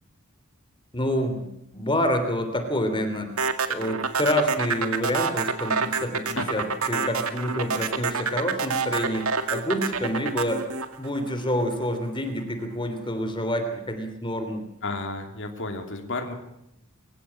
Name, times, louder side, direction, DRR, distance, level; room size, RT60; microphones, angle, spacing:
voice 1, 0.9-1.5 1.7-3.3 3.7-10.6 11.0-14.6, equal, 25° left, 7 dB, 3.2 m, -27 dB
sound 1, 3.4-11.7, right 5 dB, 75° right, 2.1 m, -27 dB
voice 2, 14.8-16.3, left 3 dB, 60° left, 4 dB, 2.9 m, -32 dB
24.5 x 16.0 x 8.8 m, 0.80 s
head